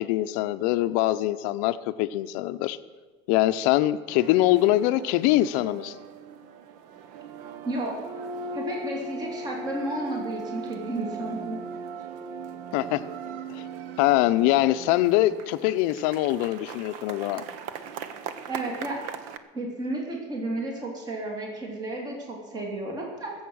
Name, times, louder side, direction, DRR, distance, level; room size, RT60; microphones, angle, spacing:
voice 1, 0.0-2.8 3.3-6.0 12.7-13.0 13.5-13.6 14.0-17.4, left 15 dB, 60° left, 12 dB, 0.6 m, -23 dB
sound 1, 4.1-19.4, right 4 dB, 55° right, 1.0 m, -39 dB
voice 2, 7.6-8.1 8.5-11.6 18.5-19.0 19.5-23.3, right 1 dB, 25° right, 0 dB, 2.8 m, -32 dB
20.0 x 8.0 x 6.3 m, 1.3 s
cardioid pair, 155°, 15 cm